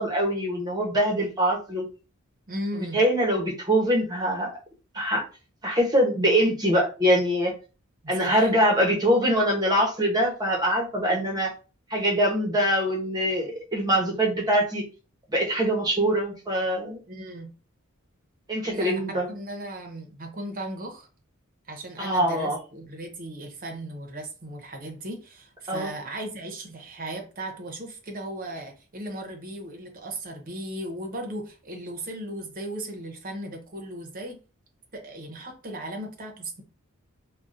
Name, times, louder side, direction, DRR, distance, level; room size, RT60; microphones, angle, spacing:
voice 1, 0.0-1.8 2.9-4.5 4.9-5.2 5.6-7.5 8.1-11.5 11.9-14.8 15.3-17.0 18.5-19.3 22.0-22.6 25.7-25.9, equal, 20° right, 1.0 m, -23 dB
voice 2, 2.5-3.0 8.2-8.5 17.1-17.5 18.6-19.0 19.3-21.1 21.7-34.4 34.9-36.6, right 1 dB, 40° right, 0.8 m, -36 dB
3.7 x 2.3 x 2.6 m
head